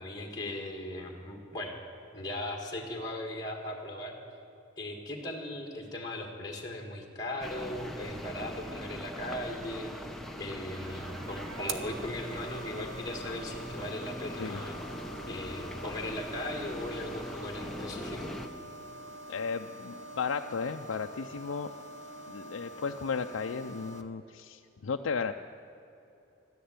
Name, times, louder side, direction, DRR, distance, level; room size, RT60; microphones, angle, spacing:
voice 1, 0.0-1.8 2.1-4.2 4.8-9.9 10.3-14.8 15.3-18.3, left 1 dB, 20° left, 1 dB, 1.5 m, -38 dB
sound 1, 7.4-18.5, equal, ahead, 0.7 m, -41 dB
sound 2, 10.5-24.0, right 2 dB, 75° right, 0.9 m, -45 dB
voice 2, 19.3-21.7 22.3-25.3, left 5 dB, 85° left, 5 dB, 0.5 m, -34 dB
12.5 x 10.0 x 9.6 m, 2.8 s
head